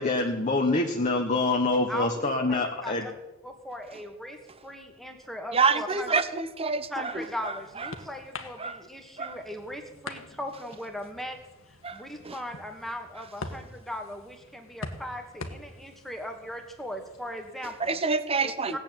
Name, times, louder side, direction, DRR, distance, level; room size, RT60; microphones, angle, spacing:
voice 1, 0.0-3.1, left 2 dB, 35° left, 1.5 m, -25 dB
voice 2, 1.9-3.1 3.4-4.4 4.6-6.2 6.9-11.4 11.7-18.0 18.4-18.8, left 1 dB, ahead, 2.0 m, -38 dB
voice 3, 5.5-7.5 8.6-8.8 9.2-9.3 11.8-12.0 12.2-12.3 17.8-18.8, right 4 dB, 30° right, 1.0 m, -27 dB
sound 1, 6.9-17.9, left 2 dB, 75° left, 1.6 m, -45 dB
17.5 x 8.1 x 9.1 m
head